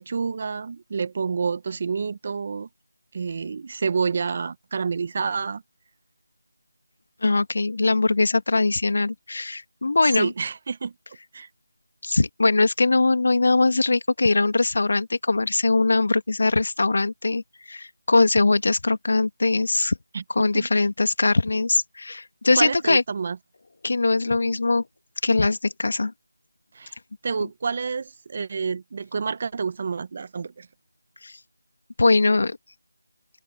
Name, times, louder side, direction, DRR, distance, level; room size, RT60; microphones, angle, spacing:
voice 1, 0.0-2.7 3.1-5.6 10.0-10.9 11.3-11.5 20.1-20.7 22.5-23.4 26.7-26.9 27.2-30.7, right 5 dB, 30° right, 1.4 m, -28 dB
voice 2, 7.2-10.3 12.0-17.4 17.7-20.0 20.3-23.0 23.8-24.8 25.2-26.1 31.2-31.4 32.0-32.6, left 3 dB, 50° left, 2.1 m, -21 dB
open air
figure-of-eight pair, 170°, 0 cm